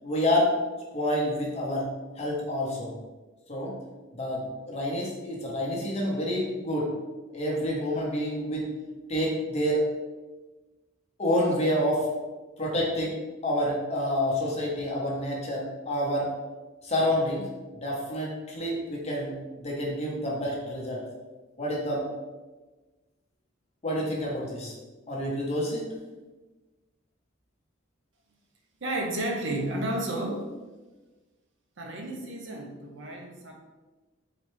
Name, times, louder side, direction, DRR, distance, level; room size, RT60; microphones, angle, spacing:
voice 1, 0.0-0.5 0.9-1.9 2.2-2.9 3.5-3.7 4.1-6.9 7.3-8.7 9.1-9.8 11.2-12.1 12.6-13.1 13.4-16.3 16.8-17.5 17.8-21.0 21.6-22.1 23.8-24.7 25.1-25.8, equal, 30° left, -4 dB, 0.9 m, -28 dB
voice 2, 28.8-30.5 31.8-33.5, right 1 dB, 65° right, 0 dB, 0.7 m, -32 dB
3.9 x 3.2 x 3.1 m, 1.2 s
head